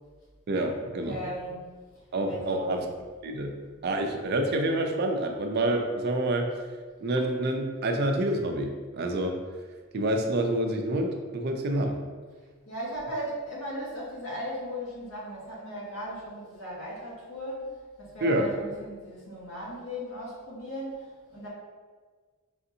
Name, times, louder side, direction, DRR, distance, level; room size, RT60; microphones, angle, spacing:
voice 1, 0.5-1.2 2.1-2.9 3.2-3.6 3.8-6.5 7.0-9.4 9.9-12.0 18.2-18.5, right 1 dB, 50° right, 3 dB, 0.4 m, -27 dB
voice 2, 1.0-1.6 2.3-2.8 12.7-21.5, equal, 85° left, -7 dB, 1.4 m, -37 dB
4.9 x 2.6 x 2.7 m, 1.5 s
head